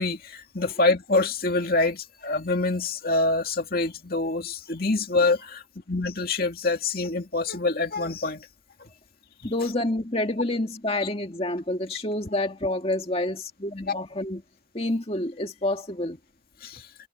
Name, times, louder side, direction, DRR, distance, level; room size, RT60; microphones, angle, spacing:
voice 1, 0.0-8.5 8.8-8.9 13.9-14.0 16.6-16.9, left 3 dB, 50° left, 2.3 m, -26 dB
voice 2, 9.4-14.4 14.7-16.2, left 1 dB, 30° left, 2.2 m, -28 dB
head